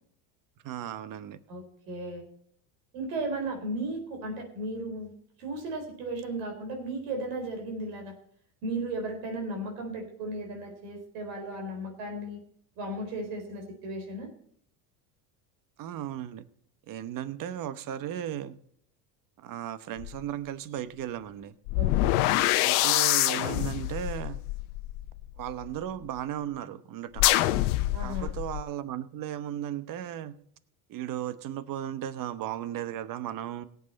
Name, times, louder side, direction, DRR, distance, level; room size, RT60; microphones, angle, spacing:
voice 1, 0.6-1.4 15.8-16.5 16.9-18.6 19.4-21.6 22.6-24.4 25.4-27.3 28.0-30.3 30.9-33.7, right 11 dB, 45° right, 15 dB, 1.1 m, -35 dB
voice 2, 1.5-2.2 2.9-5.1 5.4-8.1 8.6-12.4 12.8-14.3 21.8-22.2 27.9-28.3, right 2 dB, 75° right, 3 dB, 4.4 m, -35 dB
sound 1, 20.0-20.1 21.7-25.8 27.2-28.6, left 17 dB, 75° left, 0.9 m, -26 dB
17.0 x 8.3 x 4.2 m, 0.64 s
supercardioid pair, 100°, 44 cm